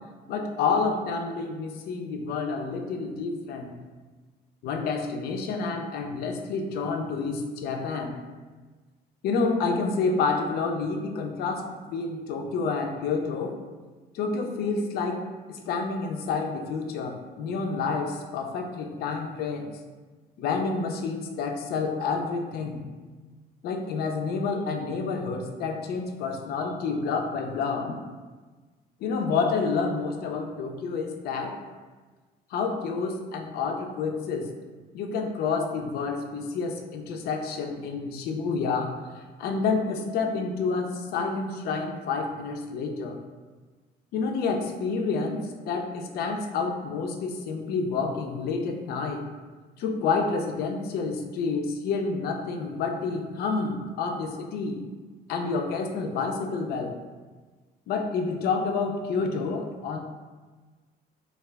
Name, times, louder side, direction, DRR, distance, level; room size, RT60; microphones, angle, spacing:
voice 1, 0.3-3.7 4.6-8.1 9.2-13.6 14.1-15.2 15.5-19.7 20.4-22.8 23.6-28.0 29.0-31.6 32.5-34.5 34.9-43.2 44.1-49.2 49.8-54.8 55.3-57.0 57.9-60.0, left 4 dB, 70° left, 3 dB, 0.4 m, -29 dB
2.3 x 2.2 x 3.3 m, 1.3 s
cardioid pair, 110°, 17 cm